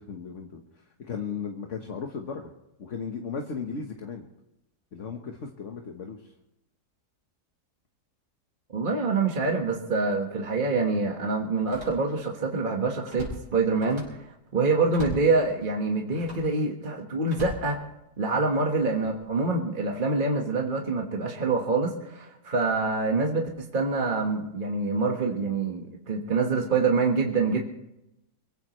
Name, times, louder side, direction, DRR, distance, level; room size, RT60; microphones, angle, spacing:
voice 1, 0.0-2.5 2.8-4.3 4.9-6.3, left 5 dB, 50° left, 3 dB, 1.5 m, -36 dB
voice 2, 8.7-14.0 14.5-17.8 18.2-27.6, right 3 dB, 30° right, 0 dB, 1.7 m, -26 dB
Slam, 10.1-10.2 11.6-12.4 12.7-14.3 14.9-15.3 16.1-16.5 17.3-18.3 18.9-19.2, right 1 dB, 85° right, 5.6 m, -41 dB
24.0 x 16.0 x 3.2 m, 0.88 s
omnidirectional pair, 1.7 m